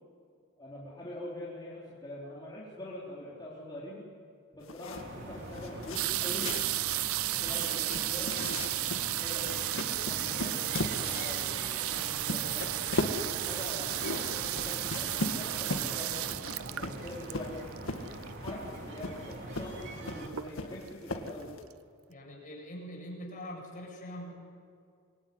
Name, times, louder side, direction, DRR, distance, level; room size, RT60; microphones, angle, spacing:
voice 1, 0.6-4.0 4.5-6.5 7.3-8.3 9.2-12.9 13.4-16.3 16.8-17.6 18.4-21.5, left 1 dB, 20° left, -7 dB, 4.3 m, -43 dB
sound 1, 4.6-21.6, left 1 dB, 65° left, 2.0 m, -39 dB
sound 2, 4.9-20.3, right 1 dB, 55° right, 3.4 m, -44 dB
sound 3, 5.9-18.5 19.3-19.4 19.6-20.0 20.3-20.9 21.4-21.5 21.7-21.8, right 15 dB, 75° right, 0.6 m, -33 dB
voice 2, 7.6-8.0 22.1-24.3, equal, 40° left, 0 dB, 7.8 m, -43 dB
26.0 x 22.5 x 9.7 m, 2.3 s
head